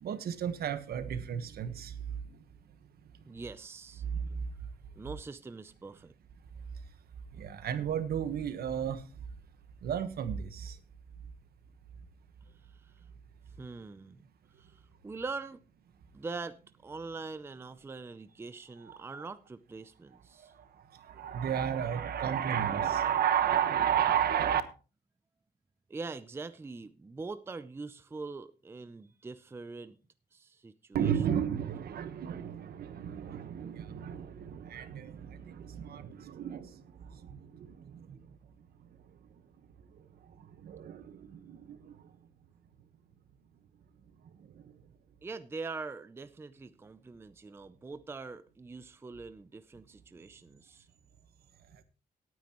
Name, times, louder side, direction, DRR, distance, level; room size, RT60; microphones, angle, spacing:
voice 1, 0.0-1.9 7.4-9.0 9.8-10.7 18.8-19.2 21.1-24.6 30.9-36.7 37.2-38.2 40.6-41.9, right 9 dB, 75° right, 1.3 m, -32 dB
voice 2, 3.3-4.0 5.0-6.1 12.6-12.9 13.6-14.3 14.6-15.6 16.1-20.5 25.9-30.0 30.3-31.1 45.2-50.9, right 4 dB, 15° right, 0.5 m, -43 dB
17.5 x 9.4 x 3.0 m
wide cardioid pair, 170°, 16 cm